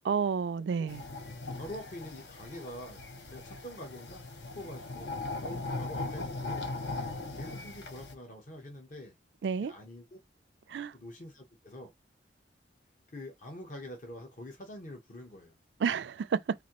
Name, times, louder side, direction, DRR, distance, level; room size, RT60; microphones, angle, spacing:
voice 1, 0.0-1.0 9.4-9.7 10.7-10.9 15.8-16.4, right 6 dB, 75° right, 0.4 m, -30 dB
sound 1, 0.9-8.1, left 3 dB, 75° left, 0.9 m, -39 dB
voice 2, 1.5-3.0 3.3-4.2 4.6-5.1 5.4-6.7 7.4-9.1 9.6-10.2 10.9-11.9 13.1-15.5, left 1 dB, 45° left, 0.9 m, -45 dB
4.2 x 2.6 x 2.9 m
head